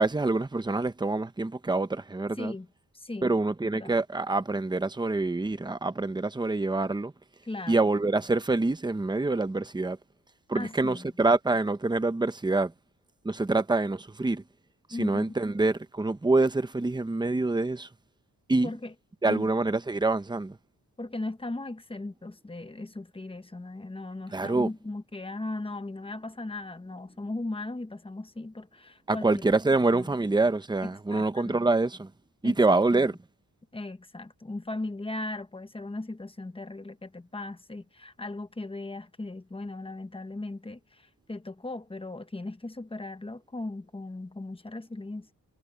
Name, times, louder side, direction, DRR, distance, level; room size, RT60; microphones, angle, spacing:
voice 1, 0.0-2.5 3.2-7.1 7.7-10.0 10.5-12.7 13.2-14.4 15.0-17.9 18.5-18.7 19.2-20.6 24.3-24.7 29.1-32.1 32.4-33.2, right 2 dB, 10° right, 0.8 m, -26 dB
voice 2, 2.4-2.7 2.9-3.3 3.6-3.9 7.4-7.9 10.5-11.1 14.9-15.3 18.6-18.9 19.3-19.5 21.0-29.4 29.9-30.2 30.8-31.7 32.4-33.1 33.7-45.3, left 2 dB, 15° left, 1.0 m, -37 dB
wide cardioid pair, 165°, 37 cm